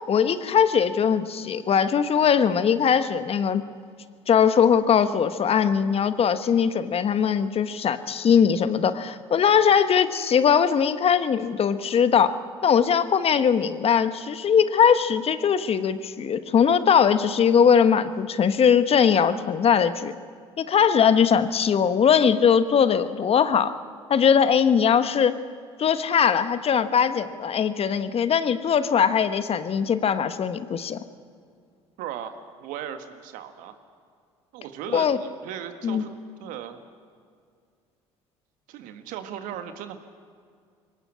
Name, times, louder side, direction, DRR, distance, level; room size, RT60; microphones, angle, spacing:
voice 1, 0.1-3.6 4.3-20.2 20.6-23.7 24.1-25.4 25.8-31.0 34.9-35.2 35.8-36.1, left 7 dB, 45° left, 12 dB, 1.2 m, -20 dB
voice 2, 32.0-33.8 34.5-36.8 38.7-40.0, right 9 dB, 65° right, 8 dB, 1.8 m, -37 dB
23.0 x 18.5 x 8.7 m, 2.2 s
hypercardioid pair, 60°, 15 cm